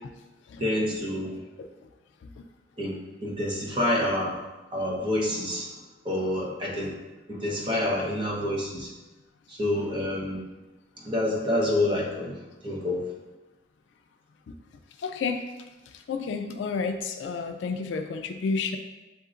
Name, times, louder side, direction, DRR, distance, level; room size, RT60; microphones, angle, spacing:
voice 1, 0.6-1.4 2.8-4.4 4.7-5.7 6.0-6.9 7.3-8.9 9.5-10.4 11.0-12.4 12.6-13.1, left 1 dB, 25° right, -3 dB, 0.9 m, -27 dB
voice 2, 15.0-15.4 16.1-18.8, left 4 dB, 75° left, 6 dB, 0.3 m, -30 dB
7.7 x 2.7 x 2.5 m, 1.1 s
head